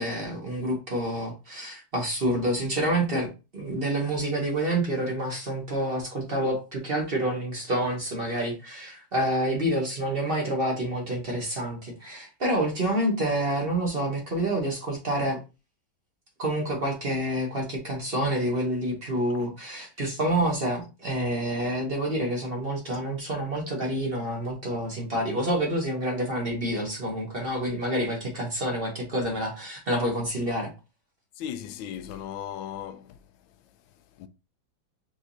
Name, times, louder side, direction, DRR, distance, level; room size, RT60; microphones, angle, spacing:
voice 1, 0.0-15.4 16.4-30.7, right 1 dB, 35° right, 1.2 m, -28 dB
voice 2, 31.4-33.2 34.2-34.3, left 9 dB, 85° left, 1.3 m, -36 dB
5.1 x 3.5 x 2.7 m
omnidirectional pair, 2.1 m